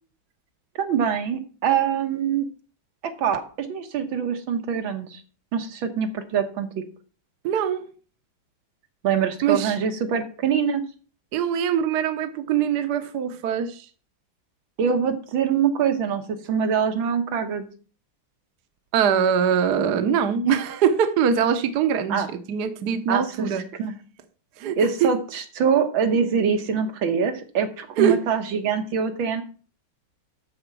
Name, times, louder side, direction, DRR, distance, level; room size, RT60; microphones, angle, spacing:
voice 1, 0.8-2.5 3.0-5.2 5.5-6.8 9.0-10.8 14.8-17.6 22.1-22.3 23.1-23.5 23.8-23.9 24.8-29.4, right 7 dB, 80° right, 2.0 m, -24 dB
voice 2, 7.4-7.9 9.4-9.8 11.3-13.9 18.9-23.6 24.6-25.1 28.0-28.2, right 7 dB, 60° right, 1.4 m, -23 dB
13.0 x 4.3 x 6.0 m
omnidirectional pair, 2.2 m